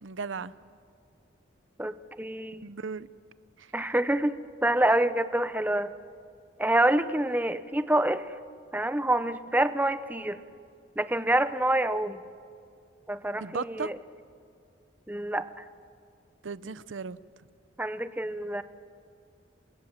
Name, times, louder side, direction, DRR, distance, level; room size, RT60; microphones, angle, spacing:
voice 1, 0.0-0.5 2.6-3.1 3.6-3.7 13.4-13.9 16.4-17.2, right 5 dB, 85° right, 16 dB, 0.7 m, -36 dB
voice 2, 1.8-2.6 3.7-4.4 4.6-5.9 6.6-8.3 8.7-10.4 11.0-12.2 13.1-14.0 15.1-15.6 17.8-18.6, right 1 dB, 10° right, 12 dB, 0.7 m, -27 dB
29.5 x 24.0 x 7.4 m, 2.4 s
head